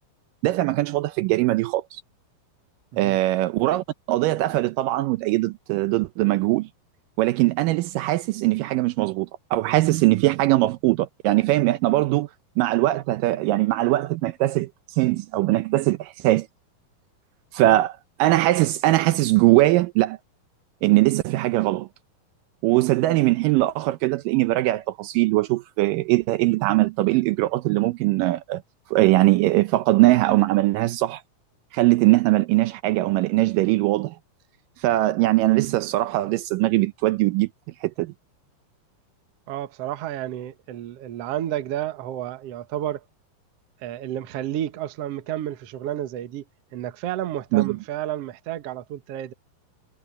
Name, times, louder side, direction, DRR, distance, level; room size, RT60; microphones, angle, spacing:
voice 1, 0.4-2.0 3.0-6.7 7.2-12.3 12.6-16.5 17.5-20.2 20.8-21.9 22.6-28.6 28.9-31.2 31.7-34.2 34.8-37.5 37.8-38.1 47.5-47.8, right 18 dB, 80° right, 2.2 m, -21 dB
voice 2, 39.5-43.0 43.8-46.4 46.7-49.3, right 12 dB, 60° right, 1.7 m, -31 dB
omnidirectional pair, 4.1 m